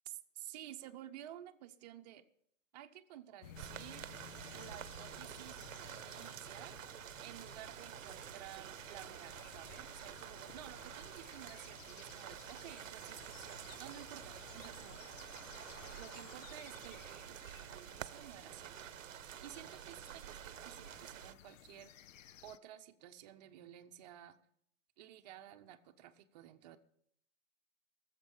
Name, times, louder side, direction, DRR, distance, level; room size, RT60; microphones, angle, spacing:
voice 1, 0.4-2.2 2.7-4.1 4.5-6.8 7.2-15.0 15.9-18.9 19.2-22.0 22.4-24.4 25.0-26.8, right 12 dB, 35° right, 5 dB, 0.8 m, -53 dB
sound 1, 3.4-22.6, left 10 dB, 80° left, 0.7 m, -57 dB
sound 2, 3.6-21.3, right 11 dB, 85° right, 0.8 m, -49 dB
sound 3, 7.1-17.0, right 2 dB, ahead, 2.5 m, -70 dB
18.5 x 7.5 x 5.5 m, 0.70 s
hypercardioid pair, 165°, 38 cm